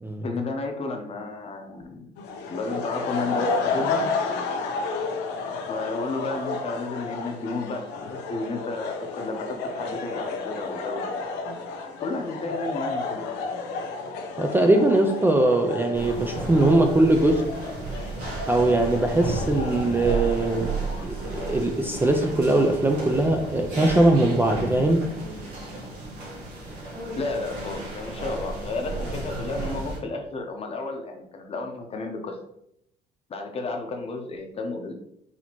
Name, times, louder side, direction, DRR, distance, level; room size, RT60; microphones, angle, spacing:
voice 1, 0.2-2.1 2.5-4.0 5.7-7.8 8.1-11.1 12.0-13.3 27.2-32.4 33.3-34.9, left 3 dB, 35° left, 4 dB, 0.7 m, -32 dB
sound 1, 2.2-21.5, left 4 dB, 90° left, 0.6 m, -32 dB
voice 2, 14.4-17.5 18.5-20.7 21.0-25.1, right 2 dB, 10° right, 3 dB, 0.3 m, -21 dB
sound 2, 15.9-30.0, right 2 dB, 80° right, 1.4 m, -33 dB
4.2 x 2.8 x 2.9 m, 0.77 s
cardioid pair, 110°, 17 cm